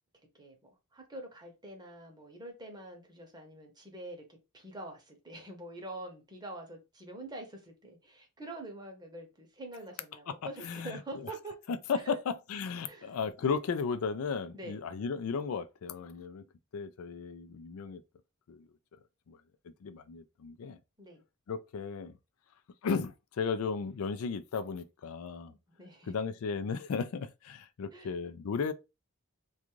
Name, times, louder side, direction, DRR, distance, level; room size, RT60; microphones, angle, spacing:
voice 1, 0.3-11.6 11.9-12.2 12.8-13.2 14.5-14.8 21.0-21.2 25.5-26.3 27.9-28.1, right 1 dB, 20° right, 0.7 m, -45 dB
voice 2, 10.6-11.0 11.7-12.0 12.5-16.4 16.7-18.0 18.5-18.6 19.3-19.4 19.8-20.8 21.5-22.1 22.8-25.5 26.1-28.7, left 5 dB, 80° left, 0.4 m, -35 dB
2.4 x 2.3 x 3.0 m
head